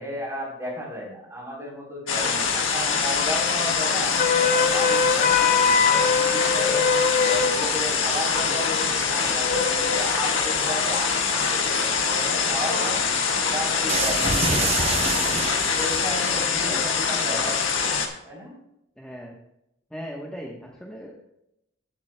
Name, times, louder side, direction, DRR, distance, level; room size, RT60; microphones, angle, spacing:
voice 1, 0.0-6.8 7.2-13.1 13.5-15.3 15.8-17.6 18.2-18.6, equal, 15° right, -3 dB, 3.5 m, -34 dB
sound 1, 2.1-18.1, left 5 dB, 85° left, 1.5 m, -24 dB
voice 2, 2.2-2.6 13.1-13.3 16.5-16.8 17.1-17.5 19.0-19.4 19.9-21.3, equal, 5° left, -2 dB, 1.0 m, -39 dB
Wind instrument woodwind instrument, 4.2-7.6, left 5 dB, 40° left, 0.7 m, -21 dB
sound 2, 13.9-16.3, right 4 dB, 30° right, 0.7 m, -27 dB
15.5 x 8.8 x 2.2 m, 0.82 s
head